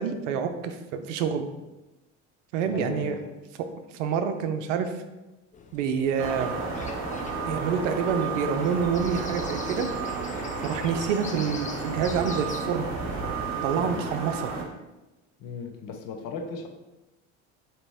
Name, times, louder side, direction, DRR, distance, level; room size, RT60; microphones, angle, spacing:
voice 1, 0.0-1.5 2.5-3.2 3.9-4.9 5.7-6.6 7.4-9.9 10.6-12.9 13.6-14.5, right 7 dB, 80° right, 8 dB, 0.5 m, -27 dB
voice 2, 2.6-3.3 13.8-14.0 15.4-16.7, left 4 dB, 60° left, 4 dB, 0.8 m, -37 dB
sound 1, 5.5-12.6, left 5 dB, 20° left, 0.4 m, -42 dB
sound 2, 6.2-14.6, right 4 dB, 50° right, 1.0 m, -32 dB
4.0 x 2.9 x 3.4 m, 1.0 s
hypercardioid pair, 80°, 37 cm